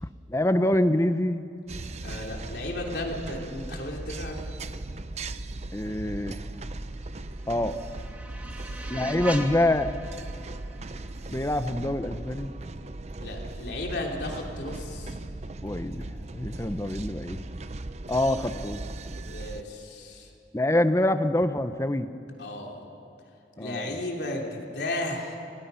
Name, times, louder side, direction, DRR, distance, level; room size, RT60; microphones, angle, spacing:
voice 1, 0.0-1.5 5.7-6.4 7.5-7.8 8.9-9.9 11.3-12.5 15.6-17.4 18.1-18.8 20.5-22.1 23.6-23.9, left 1 dB, 15° left, 11 dB, 0.7 m, -26 dB
sound 1, 1.7-19.6, right 2 dB, 40° right, 0.6 m, -38 dB
voice 2, 2.0-4.4 8.5-9.1 13.2-15.2 19.3-20.3 22.4-22.8 23.6-25.4, left 1 dB, 75° left, 0 dB, 3.3 m, -34 dB
sound 2, 7.0-12.0, right 1 dB, 10° right, 1.6 m, -41 dB
28.5 x 18.5 x 5.7 m, 2.7 s
head